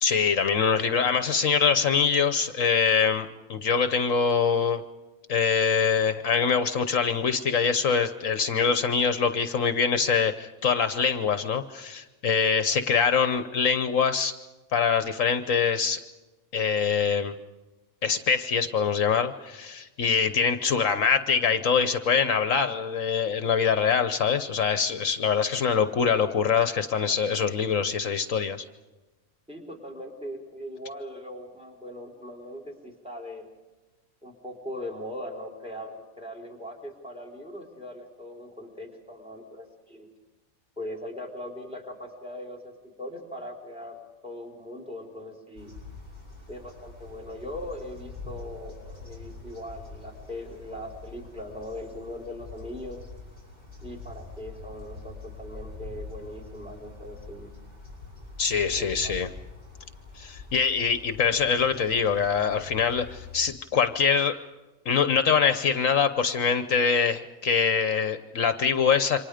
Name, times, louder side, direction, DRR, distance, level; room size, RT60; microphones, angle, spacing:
voice 1, 0.0-4.8 5.3-14.3 14.7-16.0 16.5-17.3 18.0-28.6 58.4-59.3 60.2-64.3 64.9-69.2, left 6 dB, 70° left, 10 dB, 1.3 m, -24 dB
voice 2, 29.5-33.5 34.2-40.1 40.8-45.7 46.5-53.1 53.8-57.5 58.7-59.2, left 1 dB, 5° right, 2 dB, 4.3 m, -40 dB
sound 1, 45.5-63.4, left 3 dB, 30° right, 6.9 m, -44 dB
28.5 x 25.0 x 5.1 m, 1.2 s
omnidirectional pair, 1.4 m